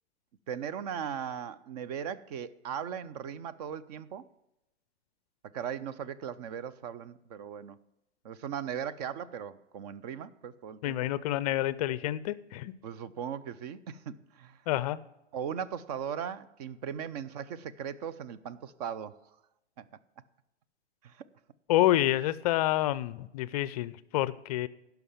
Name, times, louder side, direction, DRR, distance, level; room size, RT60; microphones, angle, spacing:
voice 1, 0.5-4.3 5.4-7.8 8.2-11.1 12.8-14.6 15.3-19.2 19.8-19.9 21.0-21.3, right 8 dB, 35° right, 17 dB, 0.5 m, -38 dB
voice 2, 10.8-12.7 14.7-15.0 21.7-24.7, left 14 dB, 35° left, 18 dB, 0.5 m, -28 dB
11.0 x 5.9 x 7.1 m, 0.90 s
hypercardioid pair, 120°, 35 cm